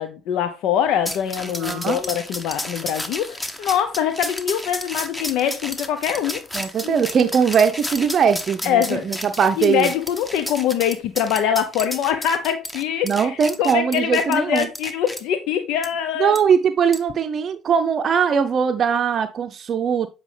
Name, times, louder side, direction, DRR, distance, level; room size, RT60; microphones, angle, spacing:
voice 1, 0.0-7.0 8.6-9.1 9.6-16.3, left 9 dB, 70° left, 0.5 m, -23 dB
sound 1, 1.0-15.2 15.8-15.9 16.3-16.4 16.9-17.1, left 1 dB, 15° left, 1.3 m, -32 dB
voice 2, 1.6-2.0 6.5-9.9 13.0-14.7 16.2-20.1, right 7 dB, 50° right, 0.5 m, -20 dB
8.1 x 5.0 x 3.2 m
hypercardioid pair, 55°, 0 cm